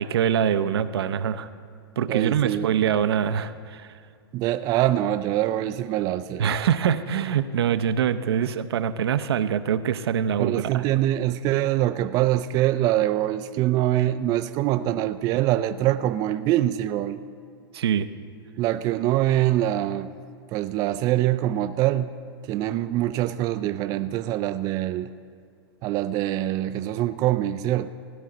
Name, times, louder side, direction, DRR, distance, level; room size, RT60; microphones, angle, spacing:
voice 1, 0.0-1.5 2.0-3.9 6.4-10.6 17.7-18.1, right 8 dB, 70° right, 12 dB, 0.6 m, -24 dB
voice 2, 2.1-2.7 4.3-6.6 10.4-17.2 18.6-20.1 20.5-22.1 22.4-25.1 25.8-27.9, right 13 dB, 25° right, 10 dB, 0.3 m, -24 dB
16.5 x 11.0 x 3.9 m, 2.3 s
hypercardioid pair, 130°, 13 cm